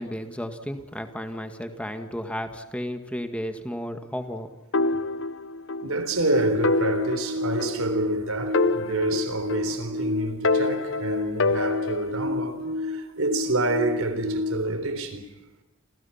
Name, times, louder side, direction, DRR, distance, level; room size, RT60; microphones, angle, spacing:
voice 1, 0.0-4.5 9.1-9.2, equal, 5° left, 1.9 m, -33 dB
sound 1, 4.7-5.9 6.2-6.3 6.6-8.2 8.5-10.0 10.4-12.3, left 3 dB, 60° left, 0.9 m, -26 dB
voice 2, 5.8-15.3, right 2 dB, 85° right, 3.8 m, -28 dB
sound 2, 6.1-14.7, left 2 dB, 65° right, 1.4 m, -31 dB
29.0 x 28.0 x 5.8 m
head